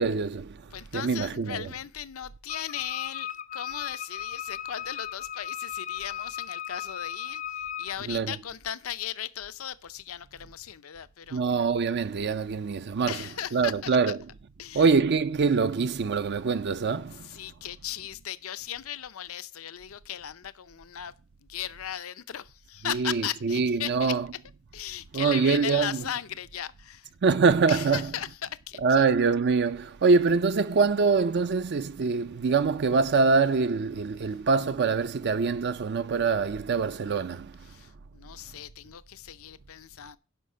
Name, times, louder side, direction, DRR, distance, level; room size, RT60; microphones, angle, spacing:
voice 1, 0.0-1.7 8.1-8.4 11.3-13.2 13.5-14.2 14.7-17.4 22.8-24.3 25.1-26.0 27.2-28.1 28.8-37.8, right 4 dB, 55° right, 0.5 m, -24 dB
voice 2, 0.7-11.4 13.1-14.1 14.6-14.8 17.2-21.1 21.4-24.2 24.7-27.1 27.7-28.8 37.7-40.2, left 10 dB, 80° left, 0.6 m, -37 dB
Wind instrument woodwind instrument, 2.5-8.0, left 9 dB, 40° left, 0.4 m, -36 dB
11.0 x 5.7 x 5.5 m
head